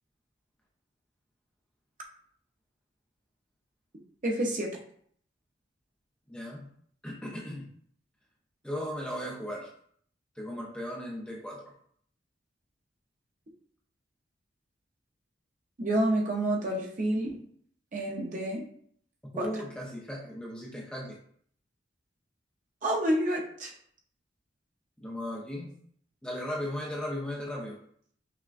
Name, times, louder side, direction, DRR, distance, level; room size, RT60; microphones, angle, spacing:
voice 1, 4.2-4.8 15.8-17.4 17.9-18.7 19.4-19.5 22.8-23.7, right 1 dB, 40° right, 0 dB, 0.6 m, -28 dB
voice 2, 6.3-6.7 7.0-7.7 8.6-9.7 10.4-11.6 19.3-21.2 25.0-25.7 26.2-27.8, left 1 dB, 5° left, -3 dB, 0.4 m, -36 dB
5.8 x 2.1 x 2.4 m, 0.63 s
head